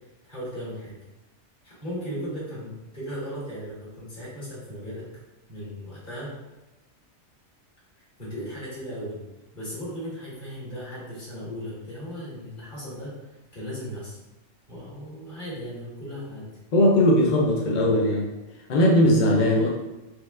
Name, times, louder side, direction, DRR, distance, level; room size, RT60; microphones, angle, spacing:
voice 1, 0.3-1.0 1.6-5.1 5.5-6.3 8.0-9.2 9.5-14.2 14.7-16.5 19.5-19.7, equal, 40° left, -9 dB, 1.7 m, -36 dB
voice 2, 16.7-18.3 18.7-19.7, left 1 dB, 60° left, -3 dB, 0.5 m, -19 dB
4.4 x 3.0 x 2.4 m, 1.0 s
omnidirectional pair, 1.4 m